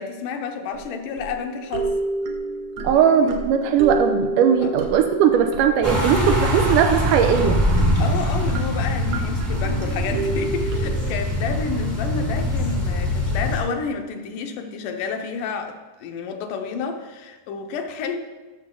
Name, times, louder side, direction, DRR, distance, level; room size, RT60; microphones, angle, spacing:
voice 1, 0.0-2.0 2.8-3.0 4.6-4.7 8.0-18.2, left 5 dB, 80° left, 5 dB, 2.3 m, -30 dB
sound 1, 0.7-11.2, right 3 dB, 70° right, 1.9 m, -31 dB
voice 2, 2.8-7.6, right 8 dB, 85° right, 6 dB, 2.3 m, -18 dB
sound 2, 5.8-13.6, left 1 dB, 10° right, 0.7 m, -23 dB
12.5 x 6.7 x 3.8 m, 1.2 s
omnidirectional pair, 3.7 m